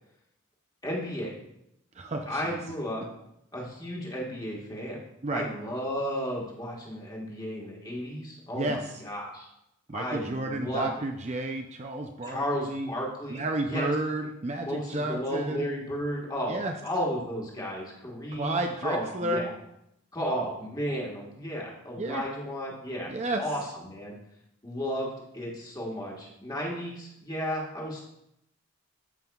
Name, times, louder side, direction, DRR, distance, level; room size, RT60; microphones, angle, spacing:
voice 1, 0.8-1.4 2.3-3.0 3.5-5.0 5.3-9.5 9.9-10.9 12.2-13.9 14.6-19.5 20.1-23.1 23.4-24.1 24.6-28.0, equal, 20° left, -3 dB, 1.4 m, -33 dB
voice 2, 2.0-2.6 5.2-5.5 8.5-8.9 9.9-12.9 13.3-15.7 16.5-16.7 18.3-19.5 22.0-22.3 23.1-23.4, right 2 dB, 30° right, 4 dB, 0.4 m, -31 dB
13.5 x 5.4 x 2.3 m, 0.83 s
head